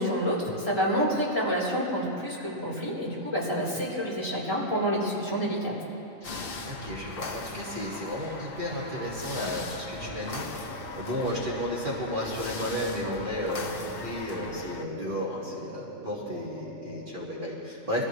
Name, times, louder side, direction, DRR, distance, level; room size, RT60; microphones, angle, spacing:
voice 1, 0.0-5.7, equal, 20° left, -7 dB, 4.1 m, -28 dB
voice 2, 3.5-3.9 6.2-10.7 11.0-18.0, equal, 40° right, -6 dB, 2.3 m, -33 dB
sound 1, 6.2-14.8, left 3 dB, 50° left, 1.1 m, -39 dB
sound 2, 10.0-17.3, right 3 dB, 55° right, 1.8 m, -44 dB
25.0 x 15.0 x 3.2 m, 2.8 s
omnidirectional pair, 1.3 m